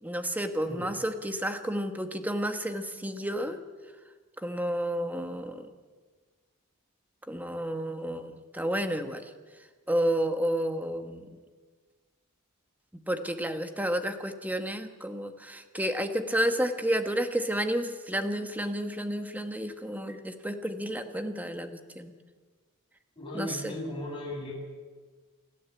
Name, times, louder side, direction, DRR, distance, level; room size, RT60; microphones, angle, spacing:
voice 1, 0.0-3.6 4.4-5.7 7.3-9.3 9.9-11.2 13.1-22.1 23.3-23.7, equal, 10° right, 7 dB, 1.5 m, -31 dB
voice 2, 23.2-24.5, left 1 dB, 25° left, -3 dB, 7.4 m, -36 dB
28.0 x 12.5 x 8.5 m, 1.5 s
head